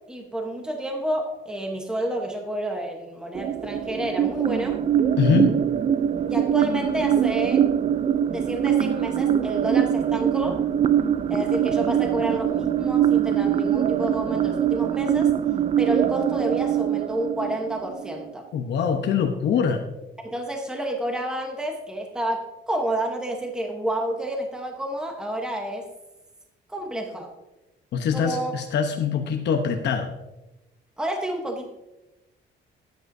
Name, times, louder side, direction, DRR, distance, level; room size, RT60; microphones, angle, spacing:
voice 1, 0.1-4.8 6.2-7.6 8.3-10.6 11.3-15.3 15.8-18.5 20.2-25.9 26.7-27.3 28.1-28.6 31.0-31.7, right 1 dB, 5° right, 2 dB, 1.0 m, -29 dB
sound 1, 3.3-18.3, right 9 dB, 35° right, 0.4 m, -23 dB
voice 2, 5.2-5.5 18.5-19.8 27.9-30.1, left 7 dB, 65° left, 4 dB, 0.9 m, -23 dB
14.0 x 9.2 x 2.7 m, 0.99 s
cardioid pair, 180°, 19 cm